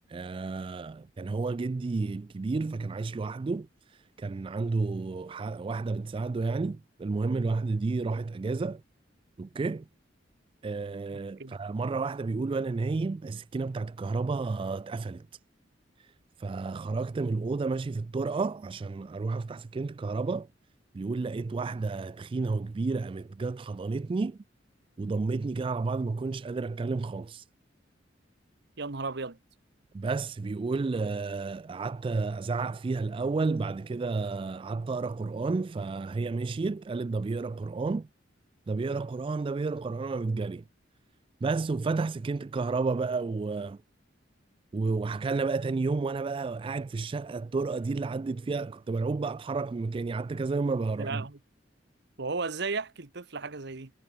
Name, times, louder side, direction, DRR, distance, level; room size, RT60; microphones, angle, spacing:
voice 1, 0.1-8.8 9.4-9.8 10.6-15.3 16.4-20.5 20.9-24.4 25.0-27.4 29.9-38.1 38.7-40.6 41.4-43.8 44.7-51.2, right 3 dB, 30° right, 0.3 m, -31 dB
voice 2, 28.8-29.4 51.0-51.4 52.2-53.9, right 4 dB, 65° right, 1.3 m, -34 dB
head